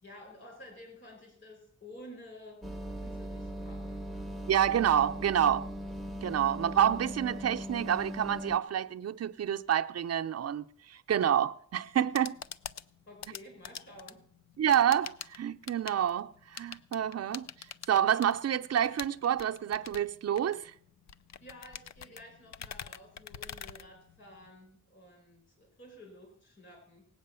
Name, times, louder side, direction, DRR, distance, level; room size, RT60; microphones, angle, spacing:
voice 1, 0.0-2.6 3.0-4.0 13.1-14.2 21.4-27.1, left 1 dB, 40° left, 5.1 m, -51 dB
sound 1, 2.6-8.6, equal, ahead, 0.9 m, -39 dB
voice 2, 4.5-5.7 6.2-12.4 14.6-17.5 17.9-20.7, right 9 dB, 55° right, 0.6 m, -28 dB
sound 2, 11.9-24.5, left 8 dB, 65° left, 0.5 m, -46 dB
18.5 x 8.3 x 6.9 m
wide cardioid pair, 165°, 30 cm